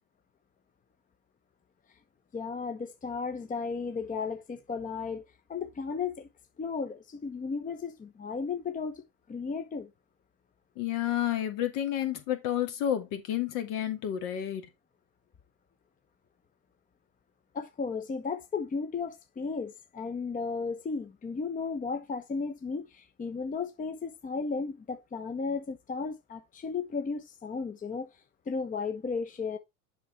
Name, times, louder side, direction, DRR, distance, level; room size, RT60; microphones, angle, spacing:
voice 1, 2.3-5.2 5.5-6.3 6.6-9.0 9.3-9.9 17.5-28.1 28.5-29.6, left 5 dB, 20° left, 1.1 m, -34 dB
voice 2, 10.8-14.7, left 11 dB, 60° left, 2.4 m, -30 dB
7.3 x 5.8 x 4.2 m
hypercardioid pair, 90°, 37 cm